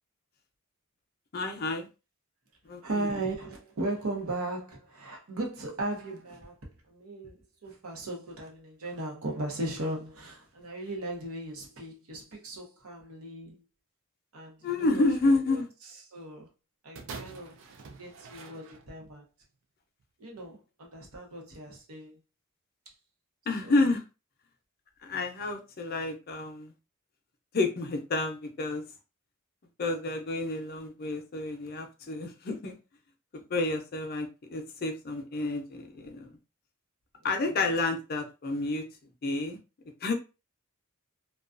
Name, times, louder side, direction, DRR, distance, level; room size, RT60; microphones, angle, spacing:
voice 1, 1.3-1.9 2.6-3.1 14.6-15.7 23.5-24.0 25.0-26.7 27.5-28.8 29.8-32.7 33.3-36.4 37.2-38.9 39.2-39.6 40.0-40.1, left 2 dB, 45° left, 0.5 m, -30 dB
voice 2, 2.8-7.4 7.6-13.6 14.3-15.6 16.1-16.5 16.8-17.6 18.0-19.2 20.2-22.1 23.6-23.9 37.5-37.6, right 2 dB, 80° right, 0.8 m, -37 dB
sound 1, 16.9-19.2 20.0-20.1, right 4 dB, 65° right, 0.4 m, -45 dB
2.3 x 2.3 x 2.4 m
head